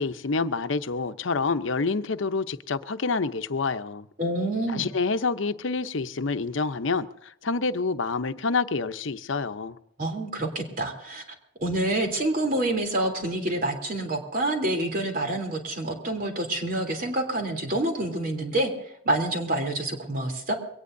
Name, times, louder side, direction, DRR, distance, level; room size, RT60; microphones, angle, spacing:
voice 1, 0.0-4.1 4.7-9.7, left 4 dB, 80° left, 0.8 m, -27 dB
voice 2, 4.2-4.9 10.0-11.2 11.6-18.7 19.0-20.5, right 1 dB, 45° right, 3.2 m, -27 dB
23.0 x 18.0 x 2.7 m
head